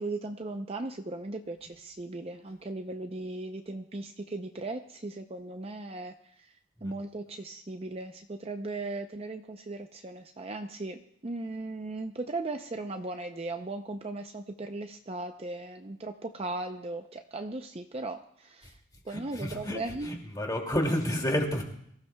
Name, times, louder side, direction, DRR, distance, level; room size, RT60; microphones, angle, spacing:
voice 1, 0.0-6.1 6.8-11.0 11.2-18.7 19.1-20.2, right 2 dB, 30° right, 6 dB, 0.5 m, -37 dB
voice 2, 19.0-21.6, equal, 20° left, 1 dB, 2.4 m, -30 dB
24.0 x 15.0 x 2.3 m, 0.71 s
head